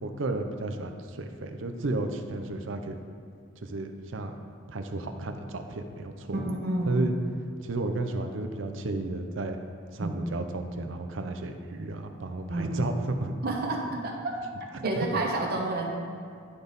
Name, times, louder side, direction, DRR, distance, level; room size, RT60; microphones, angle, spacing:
voice 1, 0.0-3.0 3.6-4.4 4.7-6.4 6.9-7.2 7.6-9.6 9.9-13.3 14.7-15.1, right 2 dB, 80° right, 6 dB, 0.6 m, -32 dB
voice 2, 6.3-7.0 10.0-10.2 12.5-13.1 13.4-14.4 14.8-15.9, right 2 dB, 50° right, 0 dB, 1.0 m, -30 dB
11.5 x 4.0 x 3.5 m, 2.3 s
head